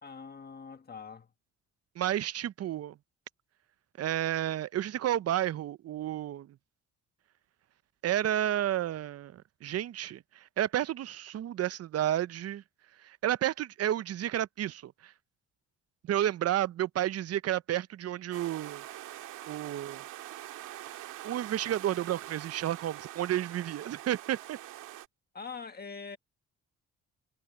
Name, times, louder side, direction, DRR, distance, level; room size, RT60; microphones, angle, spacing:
voice 1, 0.0-1.3 25.3-26.2, left 5 dB, 30° left, 1.5 m, -43 dB
voice 2, 2.0-2.9 4.0-6.6 8.0-12.6 13.0-15.1 16.0-18.8 19.5-20.0 21.2-24.6, right 12 dB, 55° right, 0.6 m, -31 dB
sound 1, 18.3-25.1, right 14 dB, 90° right, 1.9 m, -44 dB
cardioid pair, 90°, 30 cm